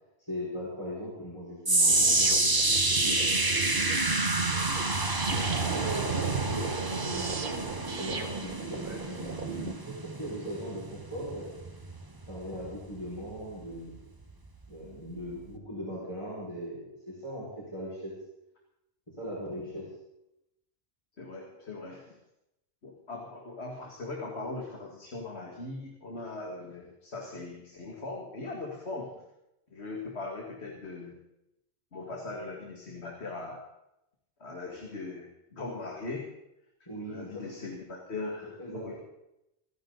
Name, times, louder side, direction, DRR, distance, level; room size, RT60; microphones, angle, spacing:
voice 1, 0.3-2.4 2.9-3.2 4.5-4.9 5.3-11.5 12.3-14.0 14.7-18.1 19.2-19.9 36.9-37.4 38.4-38.9, equal, 25° left, -9 dB, 5.8 m, -39 dB
sound 1, 1.6-14.0 14.3-14.6 15.3-15.4, right 2 dB, 20° right, 1.1 m, -29 dB
sound 2, 1.9-9.7, right 4 dB, 50° right, 1.4 m, -33 dB
voice 2, 21.2-22.2 22.8-29.2 29.7-31.2 31.9-33.6 34.4-36.3 37.1-38.9, left 3 dB, 75° left, 0 dB, 2.5 m, -40 dB
26.5 x 10.5 x 4.0 m, 0.85 s
omnidirectional pair, 1.1 m